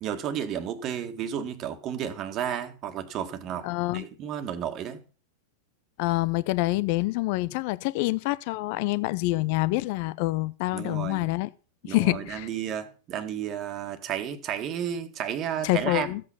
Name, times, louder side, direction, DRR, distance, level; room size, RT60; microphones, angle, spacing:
voice 1, 0.0-3.7 3.9-5.0 10.7-11.3 11.8-16.1, right 9 dB, 35° right, 1.8 m, -32 dB
voice 2, 3.6-4.1 6.0-11.5 11.8-12.5 15.6-16.2, left 20 dB, 45° left, 0.7 m, -26 dB
15.0 x 8.6 x 5.6 m
figure-of-eight pair, 90°, 0 cm